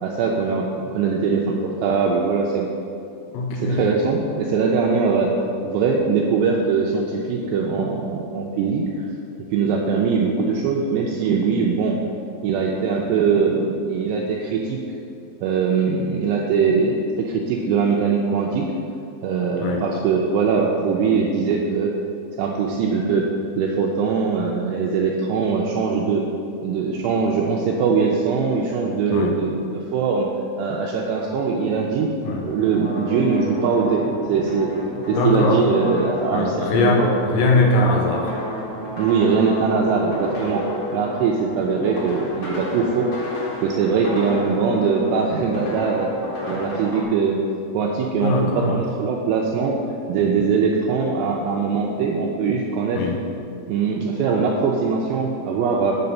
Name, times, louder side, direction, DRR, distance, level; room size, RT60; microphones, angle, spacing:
voice 1, 0.0-2.7 3.5-5.3 5.6-8.8 9.5-12.0 12.4-14.8 15.4-18.7 19.2-21.9 22.4-23.3 23.6-26.2 26.6-30.3 30.6-32.1 32.4-34.7 35.1-37.1 39.0-40.7 40.9-43.1 43.6-46.1 46.5-47.5 47.7-49.8 50.1-53.0 53.7-55.9, right 5 dB, 85° right, -1 dB, 2.5 m, -21 dB
voice 2, 3.3-3.9 19.6-19.9 29.1-29.4 32.2-32.4 35.1-35.7 36.3-38.3 48.2-48.8 52.9-53.2, left 2 dB, 80° left, 1 dB, 3.0 m, -21 dB
sound 1, 32.3-47.0, left 1 dB, 40° left, 2.3 m, -32 dB
8.3 x 6.8 x 5.3 m, 2.8 s
omnidirectional pair, 5.5 m